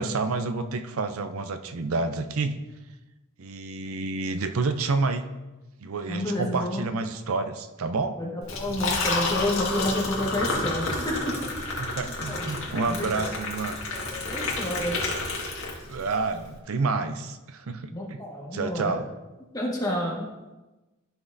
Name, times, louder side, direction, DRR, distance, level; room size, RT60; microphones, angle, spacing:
voice 1, 0.0-2.6 3.4-5.3 5.8-8.2 11.8-13.8 15.9-18.2 18.5-19.1, right 3 dB, 85° right, 9 dB, 0.6 m, -29 dB
voice 2, 6.1-6.9 8.2-11.3 12.3-13.3 14.1-14.9 17.9-18.9 19.5-20.3, left 1 dB, 20° left, -3 dB, 1.6 m, -30 dB
Liquid, 8.4-16.1, left 2 dB, 70° left, 1.8 m, -30 dB
13.0 x 6.0 x 2.7 m, 1.1 s
head